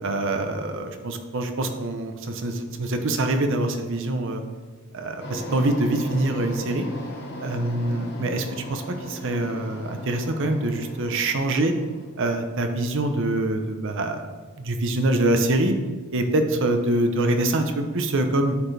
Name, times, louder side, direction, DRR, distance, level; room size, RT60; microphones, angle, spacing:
voice 1, 0.0-4.4 4.9-6.9 7.4-11.7 12.2-14.3 14.6-15.7 16.1-18.5, right 2 dB, 60° right, 6 dB, 0.7 m, -24 dB
sound 1, 5.2-12.1, left 1 dB, 55° left, 1.2 m, -37 dB
11.5 x 4.3 x 3.4 m, 1.4 s
head